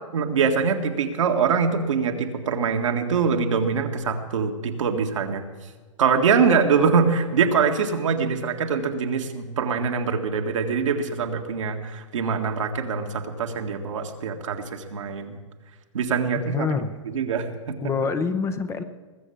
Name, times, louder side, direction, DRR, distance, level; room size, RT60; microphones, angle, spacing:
voice 1, 0.1-5.5 6.0-15.4 15.9-16.7 17.1-17.8, right 5 dB, 75° right, 4 dB, 1.8 m, -23 dB
voice 2, 16.4-16.9 17.8-18.8, left 5 dB, 15° left, 10 dB, 0.8 m, -26 dB
20.5 x 7.3 x 7.0 m, 1.4 s
hypercardioid pair, 120°, 16 cm